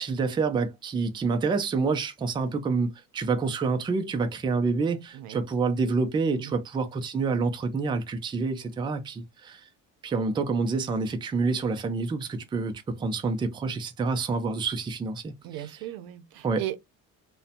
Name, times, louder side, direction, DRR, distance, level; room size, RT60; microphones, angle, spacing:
voice 1, 0.0-2.9 3.1-9.6 10.0-15.3 16.4-16.6, right 4 dB, 15° right, 0.3 m, -27 dB
voice 2, 5.1-5.4 6.4-6.6 15.4-16.8, right 13 dB, 85° right, 0.5 m, -37 dB
2.7 x 2.1 x 2.4 m
cardioid pair, 135°, 34 cm